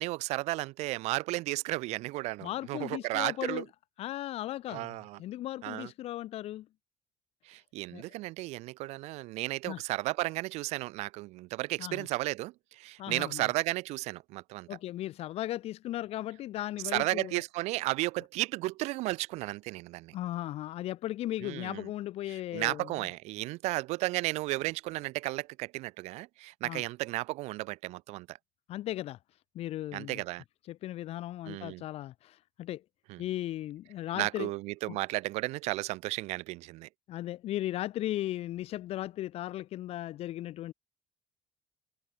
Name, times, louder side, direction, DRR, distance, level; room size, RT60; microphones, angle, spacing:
voice 1, 0.0-3.6 4.7-5.2 5.6-5.9 7.5-14.7 16.9-20.1 21.4-21.9 22.3-28.4 29.9-30.4 31.5-31.8 33.1-33.2 34.1-36.9, right 20 dB, 80° right, 0.4 m, -34 dB
voice 2, 2.4-3.6 4.0-6.7 7.9-8.0 9.7-9.8 11.8-12.1 13.0-13.4 14.7-17.4 20.1-22.9 26.6-26.8 28.7-29.2 29.5-30.2 30.7-32.8 33.2-34.5 34.9-35.0 37.1-40.7, left 14 dB, 65° left, 1.3 m, -36 dB
cardioid pair, 115°, 11 cm